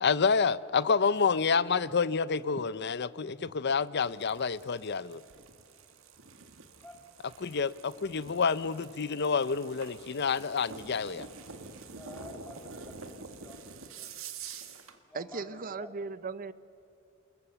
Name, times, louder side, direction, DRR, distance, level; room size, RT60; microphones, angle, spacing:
voice 1, 0.0-5.2 7.4-11.3, left 5 dB, 55° left, 0.7 m, -28 dB
sound 1, 4.0-15.0, right 5 dB, 70° right, 1.9 m, -47 dB
voice 2, 11.9-14.1 15.1-15.9, left 2 dB, 5° left, 2.5 m, -50 dB
voice 3, 15.1-16.5, right 4 dB, 40° right, 0.7 m, -38 dB
29.0 x 21.0 x 7.0 m
head